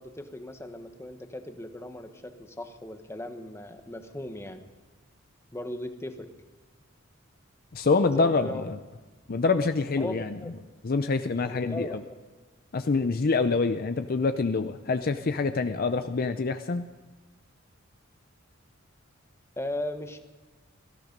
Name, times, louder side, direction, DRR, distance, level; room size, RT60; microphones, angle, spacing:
voice 1, 0.0-4.6 5.5-6.3 8.1-8.7 10.0-10.5 11.5-12.0 19.6-20.2, left 1 dB, 15° left, 7 dB, 1.2 m, -37 dB
voice 2, 7.7-8.8 9.3-10.4 10.8-11.9 12.7-16.8, left 4 dB, 45° left, 9 dB, 0.6 m, -26 dB
17.5 x 14.0 x 5.2 m, 1.3 s
head